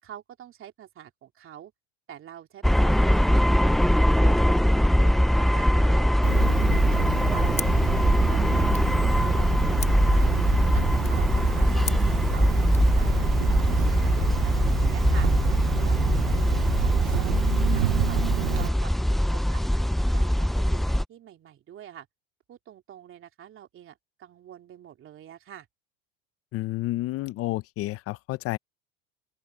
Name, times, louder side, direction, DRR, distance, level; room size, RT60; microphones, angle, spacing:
voice 1, 0.0-1.7 2.1-3.8 4.2-6.2 6.7-8.7 9.1-10.4 10.7-11.9 12.3-15.3 15.7-17.2 17.7-18.9 19.3-22.1 22.5-25.7, right 10 dB, 40° right, 3.0 m, -45 dB
sound 1, 2.6-21.0, equal, ahead, 0.3 m, -22 dB
Cricket, 6.2-18.7, right 26 dB, 65° right, 0.7 m, -29 dB
sound 2, 7.5-12.9, left 5 dB, 20° left, 1.4 m, -41 dB
voice 2, 26.5-28.6, left 17 dB, 45° left, 0.7 m, -30 dB
open air
supercardioid pair, 95°, 31 cm